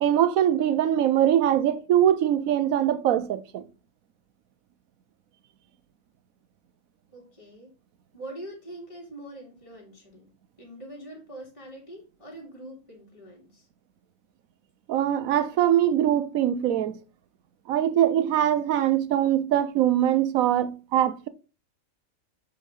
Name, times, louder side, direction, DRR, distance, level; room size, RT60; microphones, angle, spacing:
voice 1, 0.0-3.7 14.9-17.0 17.7-21.3, right 11 dB, 90° right, 1.1 m, -22 dB
voice 2, 7.1-7.7 8.1-10.3 10.6-13.7, right 1 dB, 25° left, 2.6 m, -43 dB
7.4 x 4.7 x 4.0 m
omnidirectional pair, 1.4 m